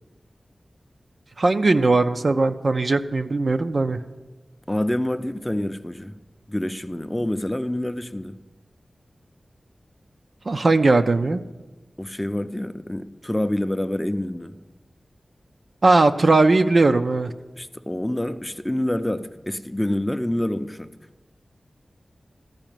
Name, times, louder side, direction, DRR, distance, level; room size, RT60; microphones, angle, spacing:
voice 1, 1.4-4.0 10.5-11.4 15.8-17.3, right 3 dB, 60° right, 8 dB, 0.5 m, -19 dB
voice 2, 4.7-6.2 6.5-8.4 12.0-14.6 17.6-20.9, left 1 dB, 10° left, 9 dB, 0.5 m, -27 dB
14.5 x 4.9 x 9.1 m, 1.2 s
wide cardioid pair, 85°, 0 cm